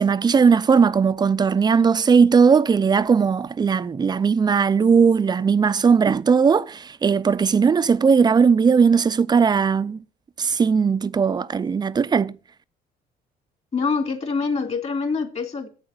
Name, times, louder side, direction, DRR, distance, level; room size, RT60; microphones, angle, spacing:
voice 1, 0.0-10.0 10.4-12.4, right 6 dB, 25° right, 0.5 m, -18 dB
voice 2, 13.7-15.7, left 4 dB, 40° left, 2.7 m, -25 dB
8.9 x 7.2 x 7.6 m
cardioid pair, 110°, 17 cm